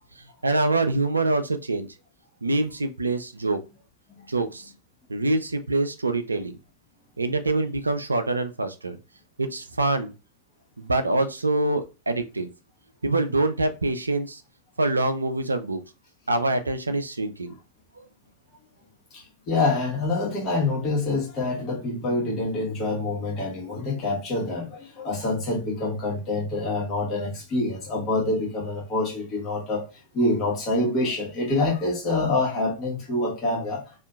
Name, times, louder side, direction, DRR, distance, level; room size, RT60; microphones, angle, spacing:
voice 1, 0.2-1.9 2.4-3.6 4.3-4.7 5.1-6.6 7.2-9.0 9.4-10.1 10.8-12.5 13.0-14.4 14.8-15.8 16.3-17.6 18.0-18.1 21.9-22.0, right 2 dB, 80° right, 0.3 m, -25 dB
voice 2, 19.1-29.9 30.1-33.8, left 2 dB, 35° left, 0.9 m, -26 dB
2.6 x 2.4 x 2.2 m
figure-of-eight pair, 90°, 0 cm